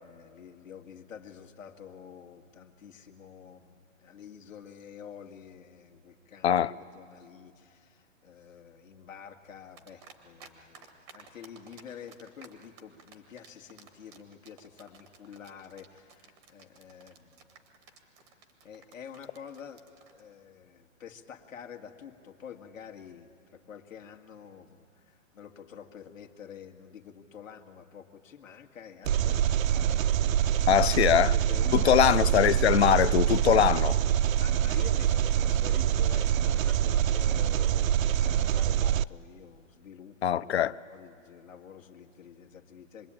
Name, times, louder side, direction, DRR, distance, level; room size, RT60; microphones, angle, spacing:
voice 1, 0.0-17.5 18.3-18.4 18.6-32.3 34.3-43.1, left 8 dB, 75° left, 2.2 m, -48 dB
sound 1, 9.8-10.5 10.7-20.2, right 6 dB, 10° right, 0.7 m, -53 dB
Engine, 29.1-39.0, right 10 dB, 85° right, 0.6 m, -25 dB
voice 2, 30.7-31.3 31.7-34.0 40.2-40.7, left 10 dB, 55° left, 0.6 m, -22 dB
26.0 x 21.0 x 8.9 m
hypercardioid pair, 175°, 39 cm